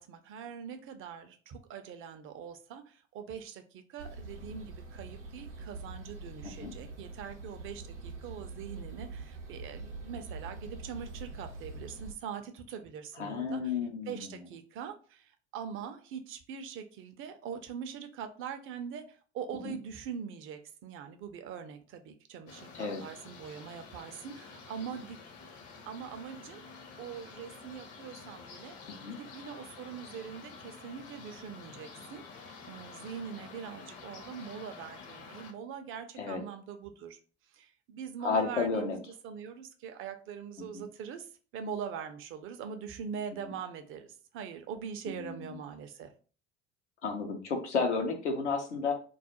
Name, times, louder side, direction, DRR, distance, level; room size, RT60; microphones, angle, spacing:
voice 1, 0.0-13.8 14.1-25.2 25.9-28.8 29.0-37.2 37.5-46.1, right 7 dB, 40° right, 8 dB, 0.4 m, -43 dB
sound 1, 4.0-12.1, right 3 dB, 90° right, 0.6 m, -44 dB
voice 2, 13.2-14.2 19.6-19.7 22.7-23.0 28.9-29.2 36.2-36.4 38.2-39.0 40.7-40.8 43.4-43.5 45.1-45.5 47.0-48.9, left 4 dB, 85° left, 3 dB, 0.6 m, -32 dB
sound 2, 22.5-35.5, left 5 dB, 45° left, 0.6 m, -49 dB
2.3 x 2.0 x 2.8 m, 0.39 s
figure-of-eight pair, 65°, 34 cm